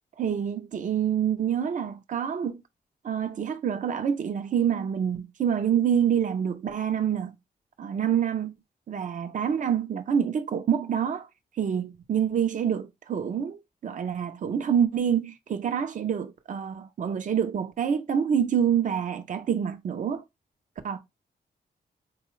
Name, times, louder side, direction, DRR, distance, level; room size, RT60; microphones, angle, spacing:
voice 1, 0.2-2.6 3.0-7.3 7.8-8.5 8.9-11.3 11.6-20.2 20.8-21.0, right 8 dB, 50° right, 0.5 m, -27 dB
3.9 x 2.2 x 3.1 m
wide cardioid pair, 180°, 16 cm